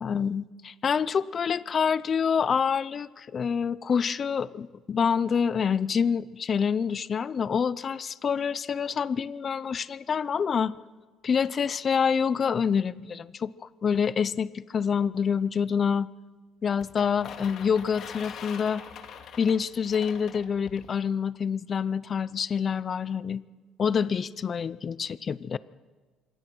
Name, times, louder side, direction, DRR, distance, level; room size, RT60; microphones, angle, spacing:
voice 1, 0.0-10.7 11.2-13.5 13.8-16.1 16.6-18.8 19.4-23.4 23.8-25.6, left 6 dB, 35° left, 18 dB, 0.6 m, -27 dB
sound 1, 16.8-20.9, left 7 dB, 55° left, 2.5 m, -44 dB
26.5 x 22.5 x 6.2 m, 1.3 s
cardioid pair, 130°, 0 cm